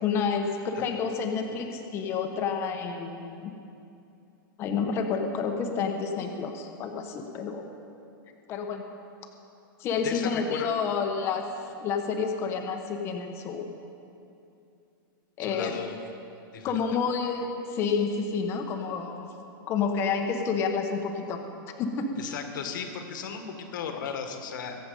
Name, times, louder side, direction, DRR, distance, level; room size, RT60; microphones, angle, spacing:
voice 1, 0.0-3.5 4.6-7.7 8.5-8.8 9.8-11.4 11.8-13.7 15.4-15.7 16.6-19.3 19.7-21.4 21.8-22.0, left 5 dB, 20° left, 4 dB, 1.0 m, -29 dB
voice 2, 10.0-10.7 15.4-16.1 16.5-17.0 22.2-24.8, left 7 dB, 60° left, 5 dB, 1.7 m, -36 dB
22.5 x 7.8 x 5.3 m, 2.6 s
supercardioid pair, 170°, 12 cm